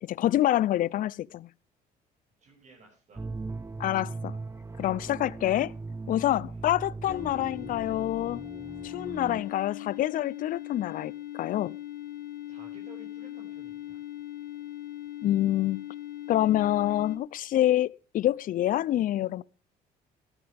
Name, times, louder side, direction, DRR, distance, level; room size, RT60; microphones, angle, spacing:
voice 1, 0.0-1.5 3.8-4.4 4.8-5.7 6.1-8.4 8.8-11.8 15.2-15.8 16.3-19.4, left 13 dB, 55° left, 0.5 m, -27 dB
voice 2, 2.4-3.2 6.5-6.7 12.5-14.0, right 2 dB, 45° right, 6.1 m, -54 dB
sound 1, 3.1-9.4, right 3 dB, 15° right, 0.8 m, -39 dB
sound 2, 7.1-17.2, left 13 dB, 70° left, 2.6 m, -40 dB
14.5 x 12.5 x 3.4 m
cardioid pair, 110°, 17 cm